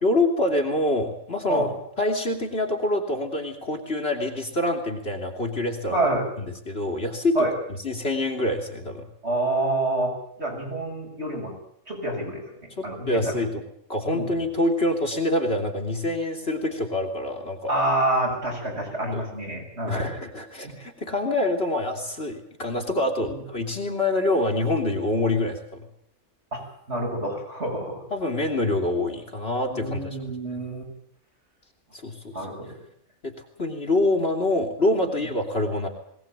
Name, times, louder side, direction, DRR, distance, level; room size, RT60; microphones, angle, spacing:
voice 1, 0.0-1.7 2.0-6.0 6.4-9.1 12.8-13.6 13.9-17.7 19.1-19.2 19.8-25.9 28.1-30.2 31.9-32.5 33.2-33.3 33.6-35.9, left 2 dB, 45° left, 4 dB, 3.2 m, -26 dB
voice 2, 5.9-6.3 7.4-7.5 9.2-10.1 10.4-11.5 11.9-12.4 12.8-13.3 14.1-14.3 17.7-20.1 20.6-20.7 23.2-23.4 26.5-26.6 26.9-28.0 29.7-30.8 32.3-32.7, right 1 dB, 50° right, -1 dB, 7.4 m, -27 dB
21.5 x 18.0 x 9.0 m, 0.70 s
omnidirectional pair, 1.5 m